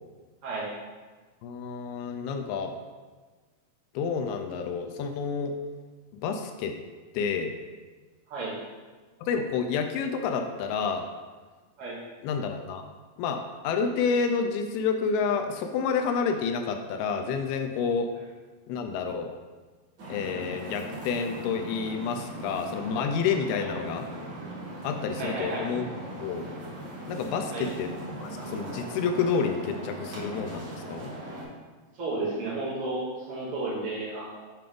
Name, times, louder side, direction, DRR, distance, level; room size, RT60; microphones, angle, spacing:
voice 1, 1.4-2.7 4.0-5.5 6.2-6.8 7.1-7.5 9.2-11.1 12.2-12.8 13.2-18.1 18.7-19.3 20.1-24.1 24.8-25.9 26.2-26.5 27.1-27.9 28.2-31.1, left 5 dB, 85° left, 5 dB, 2.4 m, -29 dB
sound 1, 20.0-31.4, right 1 dB, 45° right, 1.6 m, -39 dB
voice 2, 25.2-25.7 27.5-27.7 31.9-34.5, right 2 dB, 65° right, -7 dB, 1.4 m, -33 dB
7.7 x 3.4 x 5.1 m, 1.3 s
omnidirectional pair, 4.5 m